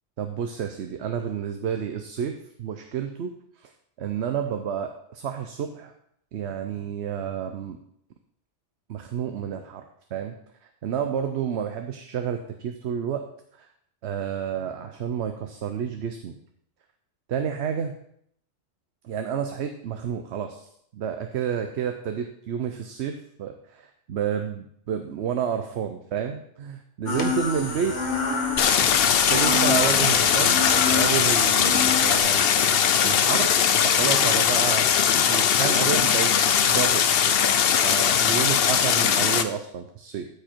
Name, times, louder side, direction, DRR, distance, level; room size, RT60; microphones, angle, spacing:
voice 1, 0.2-3.7 4.0-5.9 6.3-7.8 8.9-9.8 10.1-10.3 10.6-13.2 13.6-13.7 14.0-16.4 17.3-18.0 19.0-20.7 20.9-28.0 29.3-32.7 33.0-33.5 33.8-34.8 35.3-36.3 36.7-37.1 37.8-40.3, right 8 dB, 65° right, 6 dB, 0.9 m, -30 dB
sound 1, 27.1-32.2, left 4 dB, 75° left, 1.8 m, -28 dB
Stream, 28.6-39.4, left 8 dB, 60° left, 0.8 m, -20 dB
13.0 x 5.0 x 4.5 m, 0.71 s
omnidirectional pair, 1.2 m